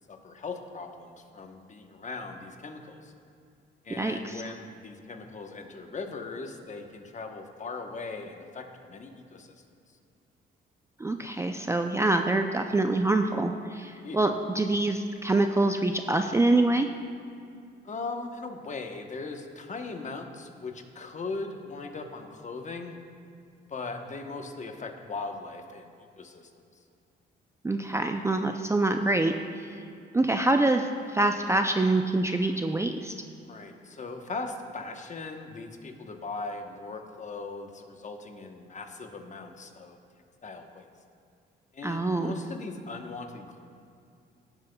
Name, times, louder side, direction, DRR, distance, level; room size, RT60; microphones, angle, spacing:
voice 1, 0.0-3.1 3.8-9.5 14.0-14.2 17.8-23.0 23.7-26.5 33.4-40.0 40.4-40.8 41.7-43.6, left 3 dB, 35° left, 5 dB, 1.0 m, -39 dB
voice 2, 4.0-4.4 11.0-16.9 27.6-29.3 29.6-29.7 30.1-33.1 41.8-42.4, right 2 dB, 15° right, 5 dB, 0.4 m, -25 dB
16.0 x 7.8 x 2.3 m, 2.5 s
cardioid pair, 90°, 20 cm